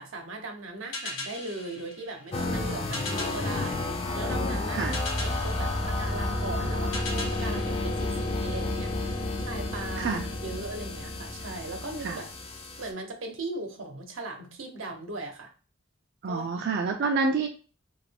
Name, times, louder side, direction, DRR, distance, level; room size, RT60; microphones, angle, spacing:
voice 1, 0.0-4.9 5.2-8.9 9.4-12.3 12.8-15.5 16.3-16.7, right 2 dB, 90° right, 3 dB, 0.8 m, -38 dB
sound 1, 0.9-8.8, left 2 dB, 75° left, 0.8 m, -40 dB
sound 2, 2.3-12.9, left 2 dB, 30° left, 0.4 m, -31 dB
voice 2, 16.2-17.5, right 4 dB, 55° right, 3 dB, 0.4 m, -27 dB
2.9 x 2.4 x 3.3 m, 0.37 s
head